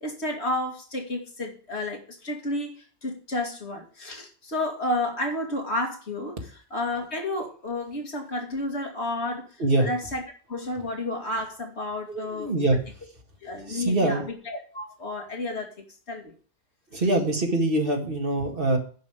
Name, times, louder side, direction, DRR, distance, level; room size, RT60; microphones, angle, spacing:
voice 1, 0.0-6.4 6.7-9.5 9.8-10.2 10.5-12.5 13.4-15.7 16.1-16.3, left 1 dB, 90° left, 1 dB, 2.6 m, -31 dB
voice 2, 12.1-12.8 13.7-14.3 16.9-18.8, right 2 dB, 55° right, 2 dB, 2.1 m, -24 dB
10.5 x 5.3 x 8.2 m, 0.42 s
omnidirectional pair, 1.1 m